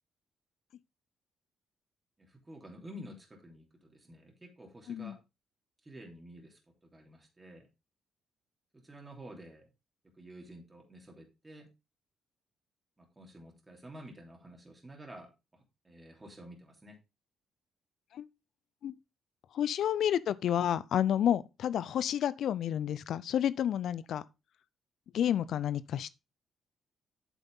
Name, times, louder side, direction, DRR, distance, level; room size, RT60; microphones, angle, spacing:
voice 1, 2.2-5.2 5.8-6.6 6.9-7.7 8.8-9.6 10.2-11.7 13.0-15.3 15.8-17.0, equal, 20° right, 3.1 m, -50 dB
voice 2, 19.5-24.2 25.1-26.1, left 10 dB, 70° left, 0.5 m, -30 dB
8.3 x 7.0 x 3.6 m
cardioid pair, 90°, 0 cm